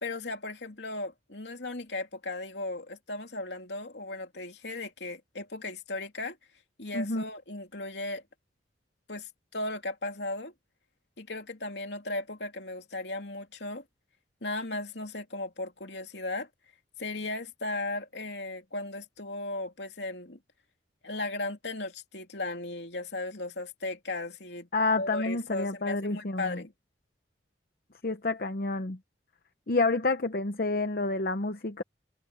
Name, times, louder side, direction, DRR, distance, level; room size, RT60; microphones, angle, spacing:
voice 1, 0.0-6.4 6.8-8.2 9.1-10.5 11.2-13.8 14.4-16.5 17.0-20.4 21.0-24.7 25.0-26.7, left 2 dB, 80° left, 3.0 m, -36 dB
voice 2, 24.7-26.6 28.0-29.0 29.7-31.8, left 3 dB, 55° left, 0.9 m, -29 dB
head